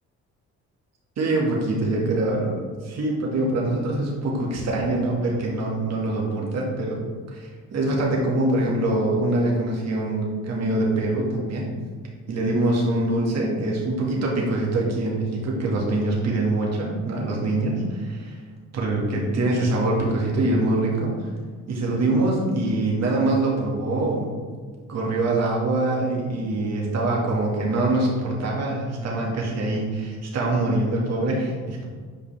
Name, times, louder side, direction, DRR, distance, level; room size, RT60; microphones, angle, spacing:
voice 1, 1.2-7.0 7.3-11.7 12.3-18.4 18.7-21.3 21.7-24.3 24.9-31.9, right 2 dB, 60° right, -3 dB, 2.0 m, -24 dB
8.3 x 5.2 x 3.5 m, 1.5 s
cardioid pair, 90°, 30 cm